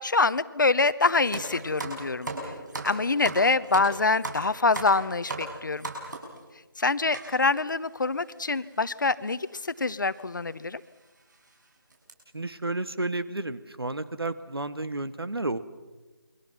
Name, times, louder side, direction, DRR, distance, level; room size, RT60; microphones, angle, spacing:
voice 1, 0.0-2.5 2.8-5.9 6.8-10.8, left 3 dB, 55° left, 16 dB, 1.0 m, -25 dB
sound 1, 1.3-6.4 7.1-7.3 8.0-8.1 8.3-8.5 9.5-9.7 10.1-10.2 10.8-10.9 11.3-11.5 11.9-12.1, right 2 dB, 50° right, 6.9 m, -36 dB
voice 2, 12.3-15.6, right 2 dB, 80° right, 12 dB, 1.9 m, -31 dB
28.5 x 23.0 x 6.0 m, 1.2 s
figure-of-eight pair, 165°, 13 cm